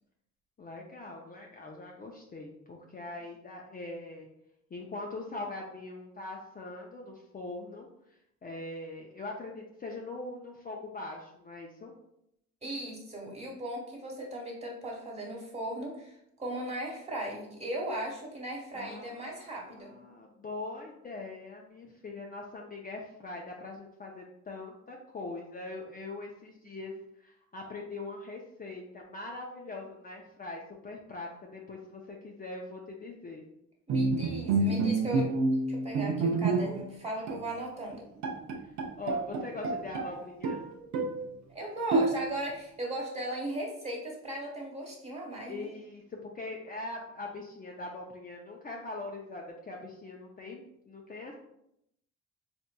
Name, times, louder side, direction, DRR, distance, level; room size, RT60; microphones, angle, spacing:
voice 1, 0.6-4.3 4.7-7.9 8.4-11.9 18.7-33.4 39.0-40.6 45.5-51.3, left 2 dB, 30° left, 0 dB, 0.5 m, -42 dB
voice 2, 12.6-19.9 33.9-35.3 35.7-38.1 41.5-45.7, right 1 dB, 20° right, -2 dB, 1.2 m, -37 dB
Bowed string instrument, 33.9-36.9 37.3-37.5 37.9-38.0 38.2-40.1 40.4-41.3 41.9-42.5, right 3 dB, 65° right, 0.5 m, -28 dB
4.3 x 2.5 x 2.2 m, 0.77 s
cardioid pair, 90°, 30 cm